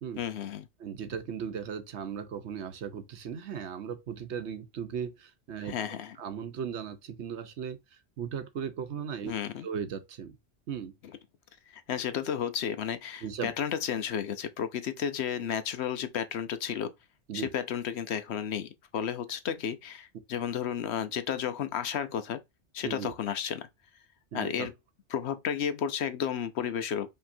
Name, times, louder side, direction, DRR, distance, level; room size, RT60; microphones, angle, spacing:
voice 1, 0.2-0.7 5.6-6.2 9.3-9.7 11.0-11.2 11.7-16.9 17.3-22.4 22.7-23.7 24.3-24.7 25.1-27.1, left 8 dB, 70° left, 0.9 m, -32 dB
voice 2, 0.8-5.7 6.2-7.8 8.2-9.3 9.6-10.3 10.7-10.9 13.2-13.5 17.3-17.5 22.8-23.1 24.3-24.7, right 7 dB, 75° right, 1.1 m, -37 dB
5.4 x 2.9 x 2.6 m
omnidirectional pair, 1.2 m